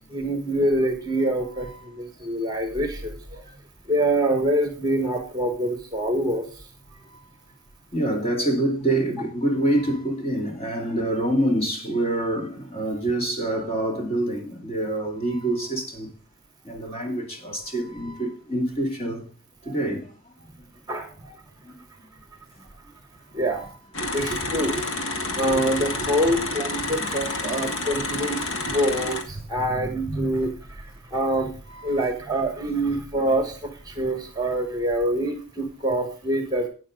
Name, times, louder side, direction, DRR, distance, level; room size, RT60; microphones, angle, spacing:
voice 1, 0.1-3.2 3.9-6.5 20.9-21.3 23.3-23.6 24.1-24.7 25.4-30.8 31.1-31.5 31.8-33.6 33.8-36.7, right 1 dB, 15° right, 1.4 m, -25 dB
voice 2, 7.9-16.1 16.6-19.2 19.6-20.1 21.7-21.8 24.0-24.4 27.4-27.5, right 1 dB, 25° left, 2.6 m, -26 dB
sound 1, 23.9-29.2, left 2 dB, 65° left, 1.8 m, -29 dB
11.5 x 9.1 x 3.8 m
head